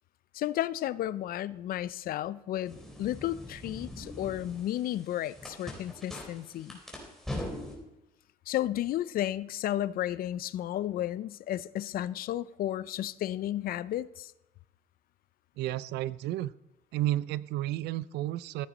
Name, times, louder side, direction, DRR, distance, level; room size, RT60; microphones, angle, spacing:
voice 1, 0.3-6.8 8.5-14.3, left 13 dB, 60° left, 0.5 m, -33 dB
sound 1, 2.7-7.8, left 1 dB, ahead, 3.9 m, -42 dB
voice 2, 15.6-16.5 16.9-18.7, right 14 dB, 80° right, 0.4 m, -32 dB
14.5 x 8.9 x 4.1 m
cardioid pair, 110°, 17 cm